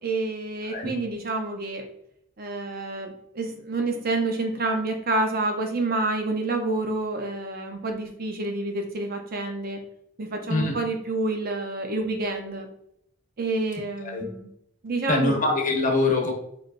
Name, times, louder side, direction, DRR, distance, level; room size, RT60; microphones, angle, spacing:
voice 1, 0.0-1.8 2.4-9.8 10.2-12.7 13.4-14.5 14.8-15.4, right 2 dB, 45° right, 3 dB, 0.6 m, -28 dB
voice 2, 15.1-16.3, left 2 dB, 40° left, 0 dB, 0.9 m, -23 dB
4.7 x 3.1 x 2.5 m, 0.75 s
head